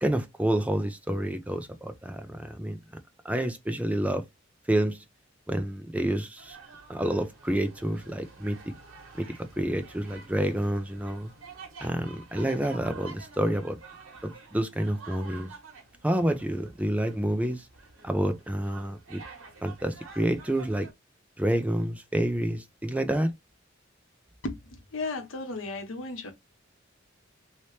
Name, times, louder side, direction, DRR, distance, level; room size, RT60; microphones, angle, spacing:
voice 1, 0.0-2.8 3.2-4.2 4.7-5.0 5.5-6.6 6.9-8.7 9.2-11.3 11.8-13.8 14.2-15.5 16.0-17.7 18.0-19.2 19.6-20.9 21.4-23.3, right 1 dB, 5° right, 0.5 m, -28 dB
sound 1, 6.4-20.9, right 4 dB, 90° right, 1.2 m, -49 dB
voice 2, 24.4-26.3, left 3 dB, 70° left, 0.9 m, -35 dB
3.0 x 2.8 x 3.2 m
head